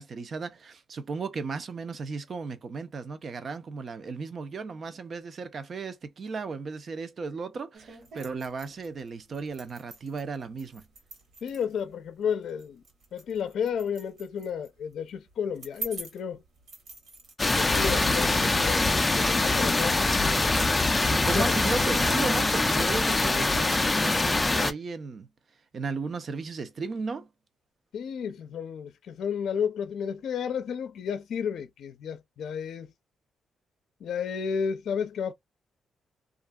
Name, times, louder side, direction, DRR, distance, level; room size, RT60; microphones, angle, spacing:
voice 1, 0.0-10.9 17.6-18.6 21.1-25.3 25.7-27.3, right 4 dB, 40° right, 0.5 m, -35 dB
sound 1, 7.7-17.3, right 2 dB, 65° right, 1.3 m, -46 dB
voice 2, 11.4-12.8 13.1-16.4 17.5-18.9 19.2-20.0 21.3-21.5 27.9-32.9 34.0-35.3, left 7 dB, 70° left, 0.5 m, -32 dB
sound 2, 17.4-24.7, left 2 dB, 15° left, 0.4 m, -24 dB
2.7 x 2.4 x 2.3 m
cardioid pair, 140°, 0 cm